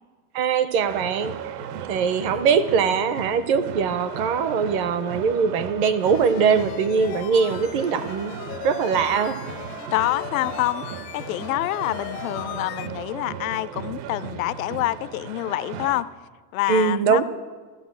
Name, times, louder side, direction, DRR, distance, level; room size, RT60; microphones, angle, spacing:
voice 1, 0.3-1.3 1.9-8.4 8.6-9.5 16.7-17.2, right 6 dB, 35° right, 13 dB, 0.5 m, -22 dB
sound 1, 0.9-16.0, right 7 dB, 75° right, 1.0 m, -36 dB
sound 2, 6.0-12.9, left 14 dB, 75° left, 0.9 m, -38 dB
voice 2, 9.9-16.1 16.5-17.2, left 17 dB, 60° left, 17 dB, 0.5 m, -27 dB
13.5 x 8.1 x 7.2 m, 1.4 s
supercardioid pair, 155°, 47 cm